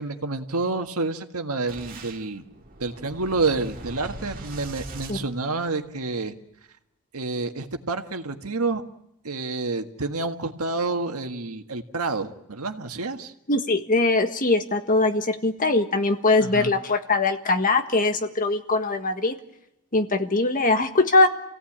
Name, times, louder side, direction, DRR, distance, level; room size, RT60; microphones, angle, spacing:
voice 1, 0.0-2.4 2.8-6.3 7.1-8.8 9.2-13.3 16.4-16.7, right 3 dB, 80° right, 6 dB, 1.7 m, -28 dB
Boom, 1.7-6.1, right 2 dB, 40° right, 2.3 m, -41 dB
voice 2, 13.5-19.3 19.9-21.3, left 2 dB, 40° left, 7 dB, 1.6 m, -21 dB
28.5 x 17.0 x 8.8 m, 0.85 s
head